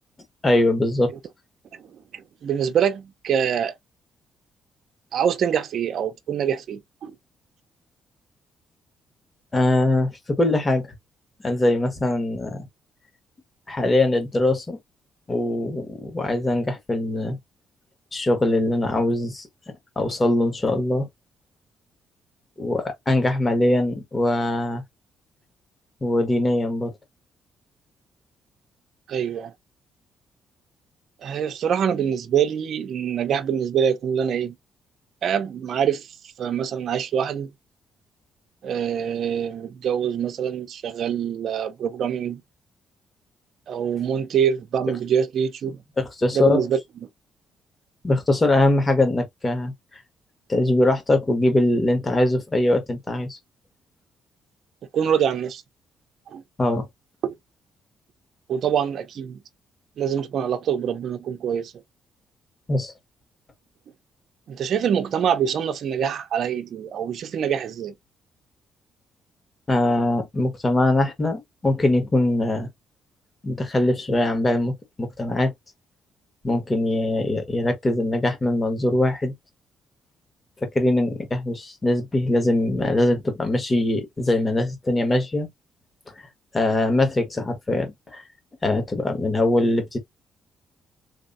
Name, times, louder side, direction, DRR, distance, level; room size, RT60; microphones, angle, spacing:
voice 1, 0.4-1.1 9.5-10.9 11.4-12.7 13.7-14.8 15.3-17.4 18.1-19.5 19.9-21.1 22.6-24.8 26.0-26.9 46.0-46.6 48.0-49.7 50.5-53.4 56.6-56.9 62.7-62.9 69.7-72.7 73.4-74.7 75.0-75.5 76.4-79.3 80.6-85.5 86.2-86.3 86.5-88.2 88.6-90.0, left 1 dB, 25° left, 1.6 m, -22 dB
voice 2, 1.8-3.7 5.1-7.1 29.1-29.5 31.2-34.6 35.2-36.1 36.4-37.5 38.6-42.4 43.7-45.8 46.3-46.8 54.9-55.6 56.3-56.4 57.2-57.3 58.5-59.4 60.0-61.7 64.5-67.9, right 8 dB, 65° right, 0.7 m, -25 dB
3.6 x 3.2 x 2.6 m
cardioid pair, 90°, 0 cm